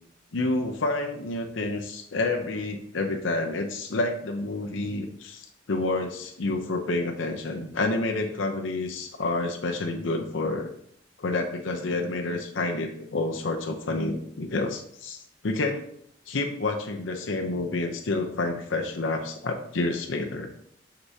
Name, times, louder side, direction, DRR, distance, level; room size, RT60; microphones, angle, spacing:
voice 1, 0.3-10.7 11.2-15.8 16.3-20.5, left 2 dB, 90° left, 3 dB, 0.7 m, -29 dB
6.5 x 6.0 x 2.8 m, 0.68 s
head